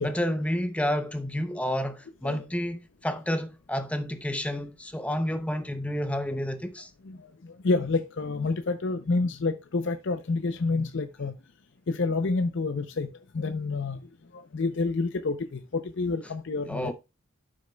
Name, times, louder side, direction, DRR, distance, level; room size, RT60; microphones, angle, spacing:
voice 1, 0.0-6.9 16.7-16.9, equal, 5° left, 0.6 m, -30 dB
voice 2, 7.0-11.3 11.9-13.1 13.3-14.0 14.3-16.9, left 3 dB, 55° left, 0.5 m, -28 dB
11.5 x 6.3 x 2.2 m
head